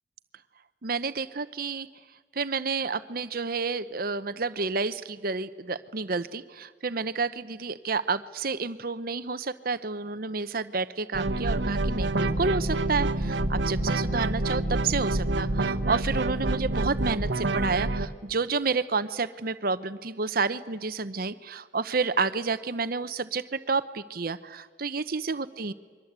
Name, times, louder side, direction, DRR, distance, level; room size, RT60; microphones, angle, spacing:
voice 1, 0.8-1.9 2.3-25.7, right 4 dB, 50° right, 13 dB, 0.9 m, -30 dB
sound 1, 11.1-18.1, right 2 dB, 80° right, 1.1 m, -27 dB
28.5 x 23.0 x 8.2 m, 1.6 s
head